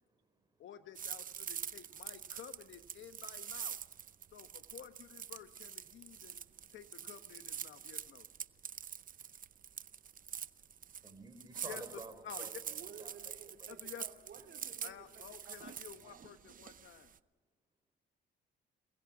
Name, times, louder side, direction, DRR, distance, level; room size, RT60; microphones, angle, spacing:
voice 1, 0.0-0.7 4.2-4.7 5.9-6.8 7.6-13.7 14.4-14.5 16.0-16.1, right 2 dB, 20° right, 7 dB, 4.4 m, -56 dB
voice 2, 0.6-3.7 4.3-6.4 6.7-8.3 11.6-12.5 13.7-14.0 14.8-17.1, left 9 dB, 75° left, 10 dB, 1.3 m, -52 dB
sound 1, 0.9-17.2, right 8 dB, 45° right, 0.7 m, -45 dB
voice 3, 12.7-16.3, right 7 dB, 60° right, 4 dB, 2.7 m, -55 dB
27.5 x 20.5 x 6.1 m, 1.4 s
cardioid pair, 90°, 20 cm